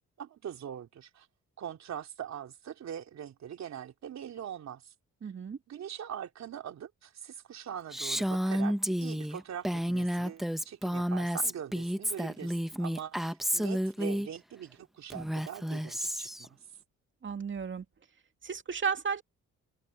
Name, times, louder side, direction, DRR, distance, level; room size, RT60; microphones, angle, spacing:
voice 1, 0.2-1.3 1.6-4.9 5.7-16.6, right 9 dB, 60° right, 3.1 m, -42 dB
voice 2, 5.2-5.6 17.2-17.8 18.4-19.2, right 6 dB, 40° right, 2.5 m, -33 dB
Female speech woman speaking, 7.9-14.3 15.1-16.5, equal, ahead, 1.1 m, -31 dB
cardioid pair, 90°, 30 cm